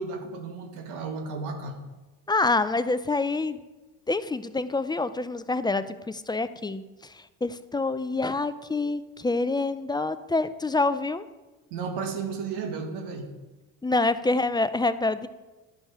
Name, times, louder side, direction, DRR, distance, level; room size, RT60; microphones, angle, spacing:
voice 1, 0.0-1.8 11.7-13.3, right 4 dB, 85° right, 4 dB, 1.6 m, -33 dB
voice 2, 2.3-3.6 4.1-11.3 13.8-15.3, left 3 dB, 10° left, 13 dB, 0.3 m, -27 dB
11.5 x 5.4 x 4.7 m, 1.1 s
supercardioid pair, 85°, 40 cm